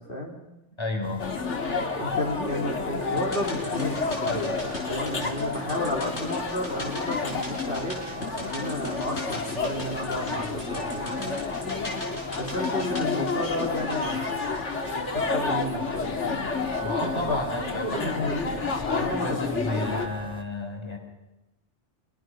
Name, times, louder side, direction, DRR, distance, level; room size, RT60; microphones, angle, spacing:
voice 1, 0.8-1.3 16.8-21.0, left 1 dB, 25° left, 3 dB, 3.9 m, -32 dB
sound 1, 1.0-20.4, right 2 dB, 5° right, 1.7 m, -42 dB
sound 2, 1.2-20.1, left 4 dB, 90° left, 2.1 m, -30 dB
voice 2, 1.9-4.6 4.9-8.0 8.4-11.4 12.4-14.6 14.9-16.5 17.0-17.4 17.8-18.6 19.0-19.9, left 1 dB, 50° left, 0 dB, 3.5 m, -32 dB
sound 3, 3.2-15.5 15.8-15.9, left 1 dB, 70° left, 5.8 m, -41 dB
25.5 x 23.0 x 6.1 m, 0.95 s
omnidirectional pair, 1.2 m